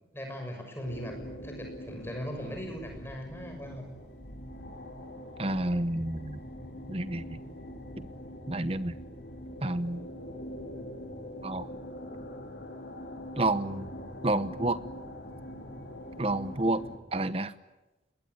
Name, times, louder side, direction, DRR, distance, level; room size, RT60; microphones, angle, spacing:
voice 1, 0.1-1.1 1.4-3.9, equal, 15° left, 3 dB, 6.4 m, -39 dB
sound 1, 0.8-17.0, equal, 75° left, 4.3 m, -43 dB
voice 2, 5.4-6.4 6.9-7.4 8.0-8.1 8.5-9.0 9.6-10.1 11.4-11.7 13.4-13.9 14.2-14.8 16.2-16.8 17.1-17.5, right 2 dB, 35° right, 13 dB, 1.0 m, -29 dB
26.0 x 21.5 x 9.7 m, 1.1 s
head